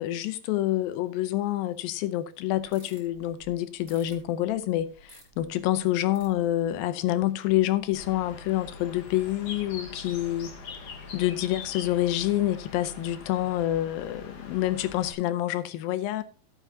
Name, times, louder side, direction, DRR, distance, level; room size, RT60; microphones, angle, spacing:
voice 1, 0.0-10.5 11.1-16.2, left 14 dB, 85° left, 2.5 m, -27 dB
sound 1, 2.5-6.9 7.3-8.3 8.6-8.9, right 1 dB, 20° right, 3.7 m, -55 dB
Bird, 7.9-15.1, left 4 dB, 55° left, 2.3 m, -43 dB
14.5 x 7.9 x 2.7 m
omnidirectional pair, 4.0 m